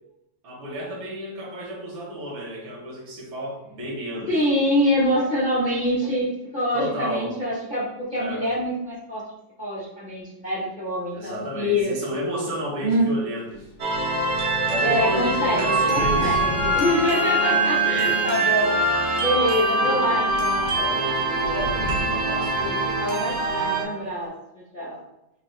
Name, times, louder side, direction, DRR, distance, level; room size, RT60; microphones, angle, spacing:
voice 1, 0.4-4.3 4.9-5.1 6.7-7.3 8.1-8.4 11.1-13.7 14.7-16.6 17.4-17.7 17.9-18.3 19.8-20.2 20.8-22.8, equal, 80° right, -2 dB, 1.9 m, -32 dB
voice 2, 4.3-6.3 6.5-9.2 9.6-11.9 12.8-13.1 14.8-18.8 19.2-20.7 22.5-24.3 24.7-25.0, equal, 40° left, -7 dB, 0.7 m, -25 dB
Thunder / Rain, 13.5-13.6 13.9-18.0 18.7-19.2 19.6-19.8 20.0-23.8, right 1 dB, 85° left, 1.4 m, -35 dB
sound 1, 13.8-23.8, right 2 dB, 60° right, 0.7 m, -23 dB
4.5 x 2.8 x 3.1 m, 0.89 s
omnidirectional pair, 2.1 m